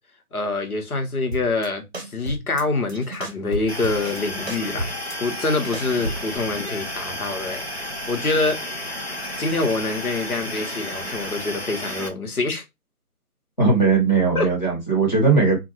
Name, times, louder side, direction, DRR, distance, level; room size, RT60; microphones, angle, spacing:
voice 1, 0.3-4.9 5.2-8.6 9.4-12.6 14.3-14.5, left 3 dB, 70° left, 1.0 m, -25 dB
sound 1, 1.3-1.7 1.9-2.6 2.9-4.2 4.5-6.4, right 1 dB, 45° right, 0.6 m, -31 dB
sound 2, 3.7-12.1, left 1 dB, 45° left, 0.5 m, -32 dB
voice 2, 13.6-15.6, right 4 dB, 30° left, 1.0 m, -18 dB
2.5 x 2.2 x 2.9 m
figure-of-eight pair, 175°, 45 cm